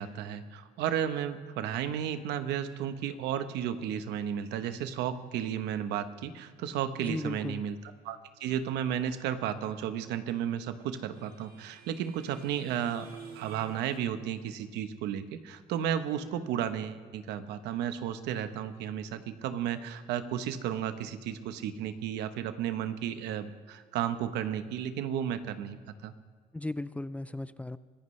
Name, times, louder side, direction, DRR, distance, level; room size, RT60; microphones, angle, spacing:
voice 1, 0.0-7.8 8.0-13.1 13.4-25.8 26.0-26.1, right 9 dB, 90° right, 10 dB, 1.0 m, -33 dB
voice 2, 7.0-7.6 26.5-27.8, left 2 dB, 10° left, 15 dB, 0.4 m, -36 dB
sound 1, 10.4-14.0, right 5 dB, 65° right, 4.2 m, -50 dB
24.5 x 15.0 x 3.2 m, 1.6 s
cardioid pair, 110°, 17 cm